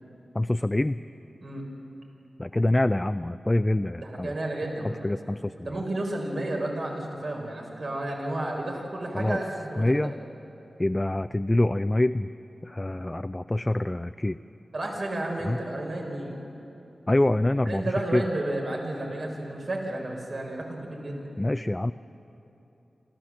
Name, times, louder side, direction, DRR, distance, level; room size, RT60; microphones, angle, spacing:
voice 1, 0.3-1.0 2.4-4.4 5.0-5.7 9.1-9.4 9.8-10.1 10.8-12.3 12.6-14.4 15.4-15.6 17.1-18.2 21.4-21.9, left 1 dB, 20° left, 10 dB, 0.4 m, -25 dB
voice 2, 4.0-5.1 5.6-10.1 14.7-16.3 17.7-21.3, right 1 dB, 65° right, -1 dB, 4.6 m, -32 dB
25.5 x 14.5 x 7.5 m, 2.9 s
wide cardioid pair, 70°, 0 cm